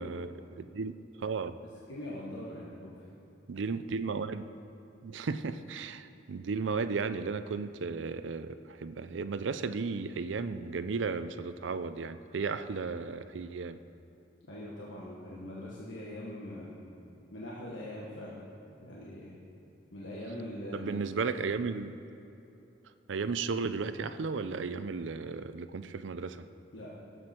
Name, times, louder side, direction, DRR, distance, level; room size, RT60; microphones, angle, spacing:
voice 1, 0.0-1.6 3.5-4.5 5.0-13.8 20.7-22.0 23.1-26.4, right 4 dB, 85° right, 12 dB, 0.5 m, -34 dB
voice 2, 1.9-3.0 14.4-16.8 17.3-18.4 18.8-19.4 19.9-21.0 26.7-26.9, left 1 dB, 90° left, -5 dB, 1.6 m, -42 dB
17.5 x 7.9 x 4.5 m, 2.9 s
head